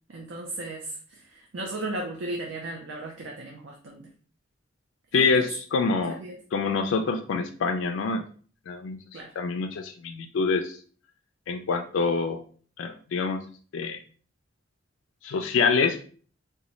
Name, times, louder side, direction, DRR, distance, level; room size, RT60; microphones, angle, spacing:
voice 1, 0.1-0.9 1.5-4.1 5.1-5.3 6.1-6.4 9.1-9.3, right 2 dB, 70° right, 0 dB, 0.6 m, -35 dB
voice 2, 5.1-6.2 6.5-8.2 8.7-10.8 11.5-12.4 12.8-13.4 13.7-14.0 15.2-16.0, left 4 dB, 80° left, 5 dB, 0.4 m, -26 dB
4.0 x 2.2 x 3.0 m, 0.43 s
head